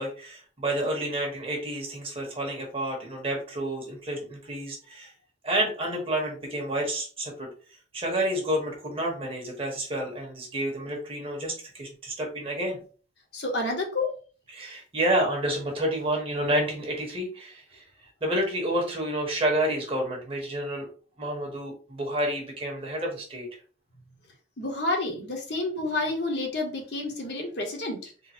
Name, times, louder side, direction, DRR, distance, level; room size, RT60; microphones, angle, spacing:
voice 1, 0.0-5.1 5.4-7.5 7.9-12.8 14.5-17.8 18.2-20.9 21.2-23.5, right 1 dB, 30° right, -1 dB, 1.4 m, -29 dB
voice 2, 13.3-14.1 24.6-28.1, left 2 dB, 60° left, 1 dB, 1.1 m, -29 dB
3.8 x 2.2 x 4.3 m, 0.39 s
head